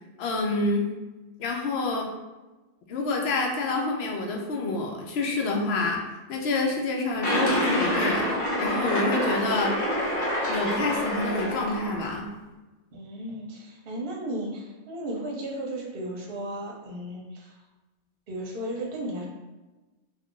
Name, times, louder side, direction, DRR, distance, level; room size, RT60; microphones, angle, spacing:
voice 1, 0.2-0.9 1.4-2.1 2.9-6.0 6.3-9.7 10.5-12.3, left 2 dB, 70° left, 0 dB, 0.8 m, -27 dB
sound 1, 7.2-12.2, left 1 dB, 40° left, 0.8 m, -27 dB
voice 2, 12.9-17.6 18.3-19.2, right 1 dB, 55° right, -2 dB, 0.8 m, -35 dB
2.4 x 2.4 x 3.6 m, 1.1 s
omnidirectional pair, 1.2 m